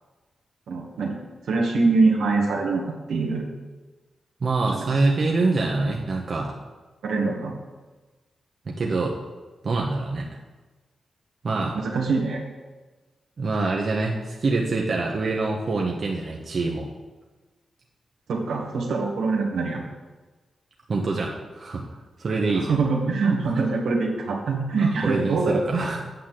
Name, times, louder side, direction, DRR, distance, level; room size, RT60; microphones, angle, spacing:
voice 1, 0.7-1.2 1.5-2.8 3.1-3.5 4.6-4.9 7.0-7.5 11.7-12.4 18.3-19.8 22.7-25.8, right 3 dB, 80° right, 0 dB, 2.0 m, -23 dB
voice 2, 4.4-6.6 8.7-9.2 9.6-10.3 11.4-11.8 13.4-16.9 20.9-21.8 22.2-22.8 24.8-26.0, right 3 dB, 60° right, -1 dB, 1.3 m, -25 dB
9.2 x 5.9 x 7.6 m, 1.2 s
supercardioid pair, 45°, 0 cm